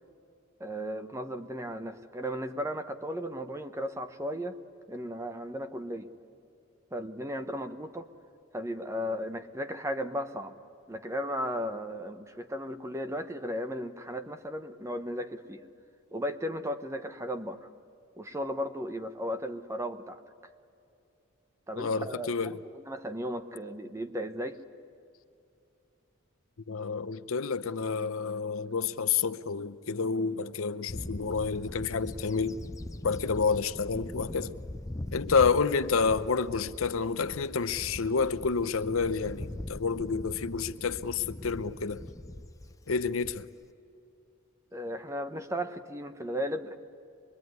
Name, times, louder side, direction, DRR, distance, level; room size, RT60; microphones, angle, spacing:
voice 1, 0.6-4.6 4.9-6.1 6.9-8.1 8.5-10.5 10.9-15.6 16.1-17.7 18.2-20.2 21.7-24.6 44.7-46.8, equal, 15° right, 0.9 m, -35 dB
voice 2, 21.8-22.6 26.7-32.6 33.0-34.6 35.1-42.0 42.9-43.5, left 5 dB, 80° left, 0.7 m, -29 dB
Bird / Wind, 30.9-43.7, left 1 dB, 15° left, 0.6 m, -42 dB
24.5 x 22.5 x 9.5 m
head